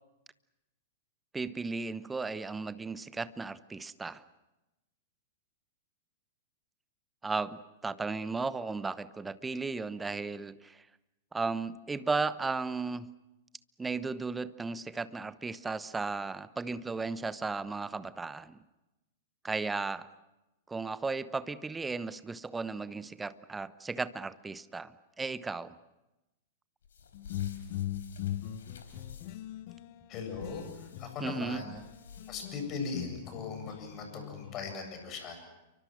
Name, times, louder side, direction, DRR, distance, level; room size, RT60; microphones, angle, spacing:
voice 1, 1.3-4.2 7.2-10.8 11.3-13.1 13.8-18.6 19.4-20.1 20.7-25.7 31.2-31.6, right 4 dB, 10° right, 16 dB, 0.9 m, -35 dB
sound 1, 26.8-29.5 30.3-31.1 31.7-32.6, left 6 dB, 70° left, 4.2 m, -51 dB
sound 2, 27.1-31.9 32.2-34.7, left 13 dB, 50° left, 1.3 m, -40 dB
voice 2, 30.1-31.7 32.3-35.5, left 4 dB, 35° left, 5 dB, 8.0 m, -39 dB
29.5 x 24.0 x 6.3 m, 1.0 s
figure-of-eight pair, 100°, 0 cm